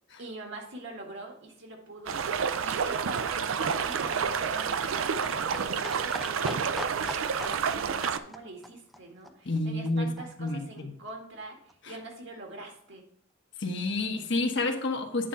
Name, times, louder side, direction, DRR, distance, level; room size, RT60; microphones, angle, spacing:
voice 1, 0.2-2.2 2.6-11.6 11.9-13.0, right 2 dB, 65° right, 2 dB, 1.8 m, -44 dB
Livestock farm animals working animals, 2.0-10.2 10.5-10.6 10.8-10.9 11.1-11.2 11.4-11.5 11.7-11.8 12.0-12.1 12.3-12.4 12.7-12.8, equal, ahead, 0.5 m, -44 dB
sound 1, 2.1-8.2, right 6 dB, 85° right, 0.5 m, -29 dB
voice 2, 9.4-10.1 10.4-10.9 11.8-11.9 13.6-15.3, left 2 dB, 60° left, 4 dB, 1.1 m, -29 dB
9.2 x 3.7 x 5.6 m, 0.68 s
head